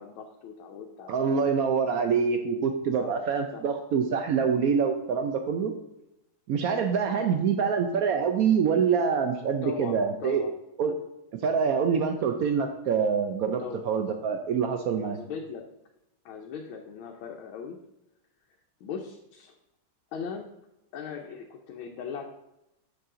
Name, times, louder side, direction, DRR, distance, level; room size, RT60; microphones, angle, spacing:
voice 1, 0.0-1.5 3.0-3.2 3.5-3.6 9.6-10.5 13.6-13.8 15.0-15.6 16.2-17.8 18.8-19.5 20.1-20.5 20.9-22.3, left 6 dB, 80° left, 1 dB, 1.6 m, -39 dB
voice 2, 1.1-5.7 6.5-10.4 10.8-11.0 11.4-15.2, right 6 dB, 85° right, 6 dB, 0.7 m, -25 dB
6.8 x 6.8 x 3.7 m, 0.88 s
omnidirectional pair, 2.2 m